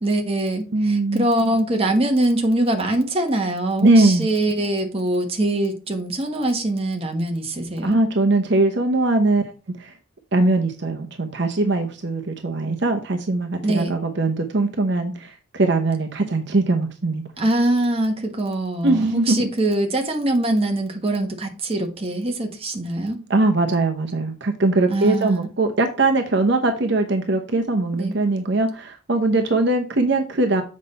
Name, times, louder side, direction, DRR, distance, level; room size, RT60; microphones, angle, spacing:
voice 1, 0.0-8.0 13.6-13.9 17.4-23.2 24.9-25.4 27.9-28.1, right 1 dB, 30° right, 1.2 m, -23 dB
voice 2, 0.7-1.3 3.8-4.3 7.8-9.4 9.8-9.9 10.3-17.2 18.8-19.5 23.3-30.6, right 2 dB, 55° right, 0.8 m, -20 dB
7.5 x 5.3 x 4.1 m
head